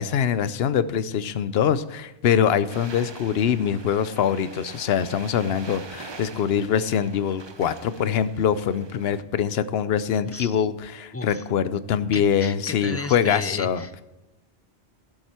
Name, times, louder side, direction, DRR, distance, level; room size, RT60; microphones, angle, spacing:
voice 1, 0.0-13.8, left 8 dB, 75° left, 14 dB, 0.9 m, -24 dB
sound 1, 2.7-9.2, right 4 dB, 30° right, 0.6 m, -43 dB
voice 2, 10.2-10.6 11.1-11.4 12.1-14.0, left 3 dB, 25° left, 10 dB, 0.3 m, -34 dB
16.5 x 7.8 x 4.3 m, 1.0 s
omnidirectional pair, 1.1 m